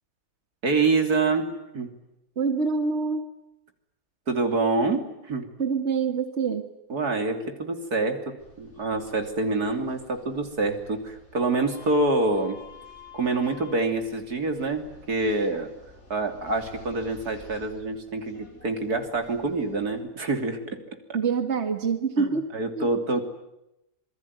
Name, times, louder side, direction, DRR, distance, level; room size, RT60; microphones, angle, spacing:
voice 1, 0.6-1.5 1.7-1.9 4.3-5.5 6.9-12.6 13.1-15.7 16.1-21.0 22.2-23.2, right 3 dB, 75° right, 6 dB, 3.6 m, -26 dB
voice 2, 2.4-3.2 5.6-6.6 21.1-22.5 22.8-22.9, right 5 dB, 45° right, 7 dB, 2.1 m, -25 dB
sound 1, 8.4-20.0, left 4 dB, 45° left, 7.0 m, -50 dB
27.0 x 21.5 x 9.6 m, 0.88 s
omnidirectional pair, 1.6 m